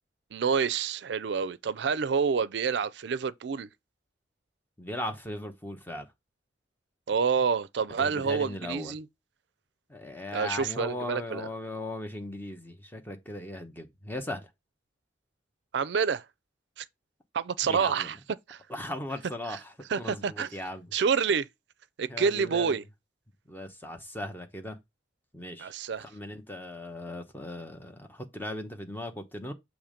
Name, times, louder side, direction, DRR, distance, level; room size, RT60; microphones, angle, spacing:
voice 1, 0.3-3.7 7.1-9.0 10.3-11.5 15.7-16.3 16.8-16.9 17.3-18.2 18.5-18.6 19.5-19.6 19.9-20.5 20.9-21.5 22.0-22.8 25.6-26.1, right 6 dB, 65° right, 0.4 m, -28 dB
voice 2, 4.8-6.1 8.0-8.9 9.9-14.5 17.6-18.1 18.7-20.9 22.1-22.8 23.5-24.8 25.3-25.7 26.0-29.5, left 1 dB, 10° left, 0.9 m, -38 dB
7.1 x 3.1 x 5.0 m
head